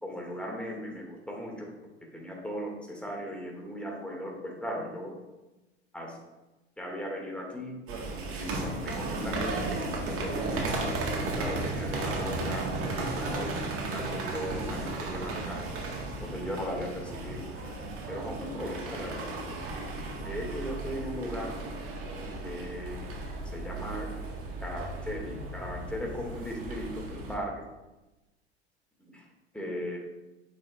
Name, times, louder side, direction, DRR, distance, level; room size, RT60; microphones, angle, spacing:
voice 1, 0.0-1.7 2.1-5.2 5.9-6.2 6.8-7.8 8.3-13.6 13.9-15.9 16.2-17.4 18.1-19.4 20.1-21.6 22.4-23.0 23.5-24.1 24.6-27.6 29.0-29.3 29.5-30.0, equal, 5° left, -2 dB, 2.2 m, -37 dB
sound 1, 7.9-27.3, right 2 dB, 40° right, 1.8 m, -35 dB
8.5 x 5.7 x 2.5 m, 1.0 s
hypercardioid pair, 80°, 33 cm